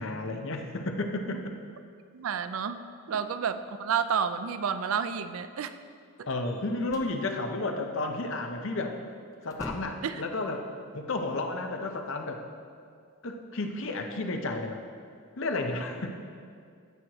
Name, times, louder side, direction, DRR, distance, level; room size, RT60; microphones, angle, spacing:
voice 1, 0.0-1.5 6.3-9.0 9.4-10.7 10.9-12.4 13.2-14.8 15.4-16.1, left 2 dB, 60° left, 4 dB, 0.7 m, -32 dB
voice 2, 2.1-2.8 3.1-5.7 10.0-10.2, right 7 dB, 65° right, 11 dB, 0.4 m, -30 dB
sound 1, 6.4-7.2 8.8-9.0 9.3-10.2, left 1 dB, 15° left, 0.4 m, -42 dB
15.0 x 6.3 x 3.0 m, 2.2 s
head